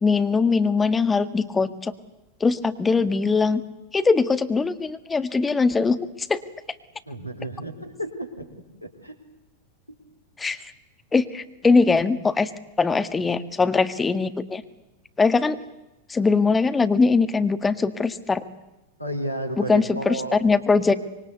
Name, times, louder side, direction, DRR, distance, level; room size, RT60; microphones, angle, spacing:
voice 1, 0.0-1.9 2.4-3.6 3.9-6.0 6.3-6.4 10.4-10.6 11.1-12.5 12.8-14.6 15.2-15.6 16.1-18.4 19.6-20.9, left 4 dB, 15° left, 10 dB, 1.8 m, -21 dB
voice 2, 7.1-8.5 8.8-9.1 19.0-20.4, right 1 dB, 90° left, 7 dB, 4.4 m, -32 dB
26.0 x 23.5 x 8.3 m, 0.99 s
figure-of-eight pair, 90°, 0 cm